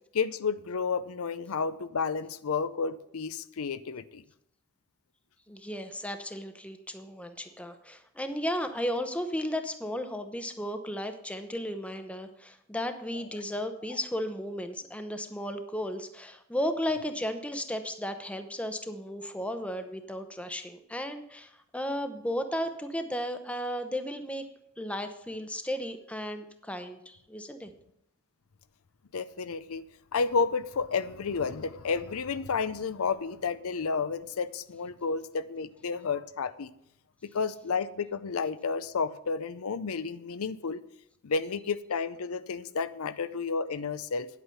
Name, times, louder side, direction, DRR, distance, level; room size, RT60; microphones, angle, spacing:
voice 1, 0.1-4.2 29.1-29.8 30.1-36.7 37.2-40.8 41.2-44.3, left 5 dB, 85° left, 14 dB, 0.6 m, -31 dB
voice 2, 5.5-24.4 24.8-27.7, equal, 5° left, 8 dB, 0.7 m, -34 dB
9.8 x 8.3 x 5.7 m, 0.77 s
head